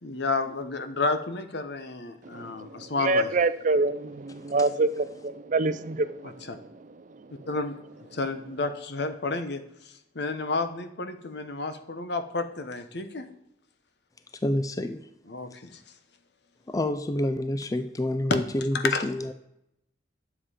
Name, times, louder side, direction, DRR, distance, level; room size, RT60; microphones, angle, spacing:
voice 1, 0.0-3.3 6.2-6.6 7.5-7.7 8.1-13.3 15.3-15.8 18.3-18.4 18.8-19.1, left 3 dB, 65° left, 9 dB, 1.0 m, -31 dB
voice 2, 2.3-7.5, right 3 dB, 45° right, 13 dB, 0.5 m, -27 dB
voice 3, 14.4-15.1 16.7-19.3, left 1 dB, 20° left, 10 dB, 0.4 m, -28 dB
10.0 x 7.3 x 4.9 m, 0.80 s
head